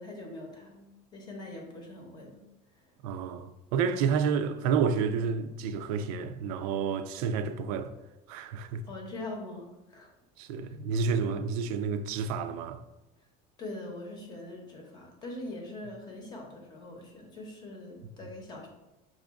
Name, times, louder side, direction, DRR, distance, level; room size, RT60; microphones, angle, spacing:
voice 1, 0.0-2.4 2.8-2.9 8.9-10.1 10.6-10.7 13.6-18.7, left 2 dB, 25° left, 0.8 m, -42 dB
voice 2, 3.0-7.9 8.3-8.9 10.4-12.8, right 6 dB, 85° right, 0.4 m, -30 dB
6.0 x 2.5 x 3.5 m
cardioid pair, 175°, 18 cm